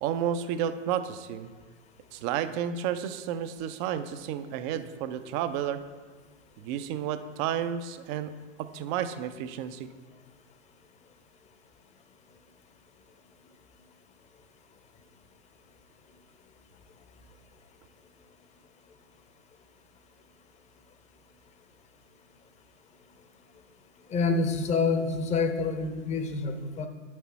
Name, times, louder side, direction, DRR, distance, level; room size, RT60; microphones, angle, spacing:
voice 1, 0.0-1.5 2.1-5.8 6.6-8.3 8.6-9.9, right 9 dB, 25° right, 11 dB, 0.3 m, -31 dB
voice 2, 24.1-26.9, left 4 dB, 20° left, 8 dB, 0.6 m, -27 dB
8.2 x 6.2 x 4.2 m, 1.4 s
figure-of-eight pair, 100°, 36 cm